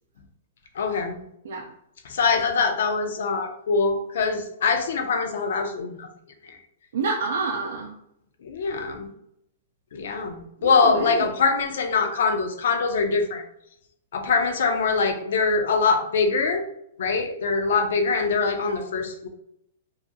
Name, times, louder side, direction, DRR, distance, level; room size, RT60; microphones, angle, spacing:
voice 1, 0.8-1.3 2.1-6.1 6.4-6.6 8.4-9.1 9.9-13.4 14.1-16.6 17.0-19.3, left 4 dB, 75° left, 6 dB, 0.4 m, -23 dB
voice 2, 6.9-8.0 10.6-11.3, right 4 dB, 70° right, 1 dB, 0.3 m, -28 dB
2.4 x 2.2 x 2.6 m, 0.76 s
hypercardioid pair, 160°, 0 cm